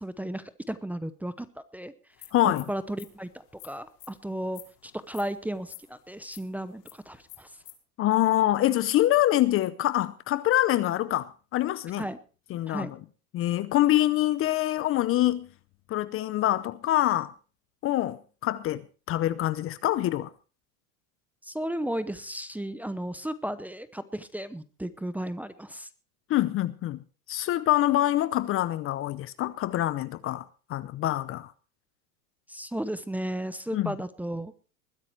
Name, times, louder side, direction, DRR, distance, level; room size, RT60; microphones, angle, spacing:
voice 1, 0.0-1.9 2.4-7.5 12.0-12.2 12.7-12.9 21.4-25.9 32.5-34.5, right 1 dB, 5° right, 0.8 m, -34 dB
sound 1, 2.1-7.7, left 15 dB, 50° left, 4.9 m, -50 dB
voice 2, 2.3-2.6 8.0-12.1 12.5-12.9 13.3-15.5 15.9-17.3 17.8-18.8 19.1-20.3 26.3-27.0 27.3-30.4 30.7-31.5 33.7-33.9, left 14 dB, 30° left, 0.7 m, -25 dB
21.0 x 9.7 x 4.5 m
supercardioid pair, 130°, 44 cm